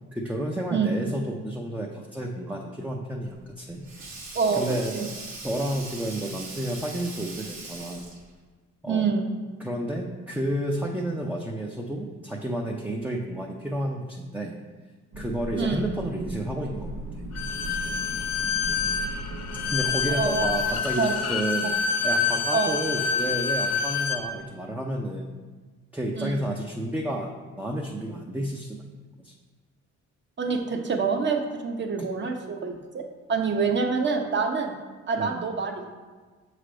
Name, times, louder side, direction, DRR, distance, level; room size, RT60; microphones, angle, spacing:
voice 1, 0.1-3.9 4.5-5.1 5.4-8.0 8.8-9.1 9.6-14.5 15.2-16.9 17.6-18.0 19.6-21.7 22.0-25.3 25.9-27.3 27.6-28.8 29.2-29.3 35.2-35.3, right 1 dB, 5° right, -1 dB, 0.5 m, -31 dB
Sink (filling or washing), 3.2-8.4, right 3 dB, 65° right, 1.5 m, -40 dB
voice 2, 8.9-9.3 15.6-15.8 20.1-20.5 21.0-21.1 22.5-22.8 26.2-26.5 30.4-33.0 33.3-34.8 35.1-35.9, right 5 dB, 40° right, 3 dB, 0.9 m, -26 dB
sound 1, 15.1-20.8, right 1 dB, 85° right, 0.9 m, -37 dB
Bowed string instrument, 17.3-24.2, left 5 dB, 60° left, 0.8 m, -27 dB
6.6 x 3.3 x 5.0 m, 1.4 s
cardioid pair, 90°, 30 cm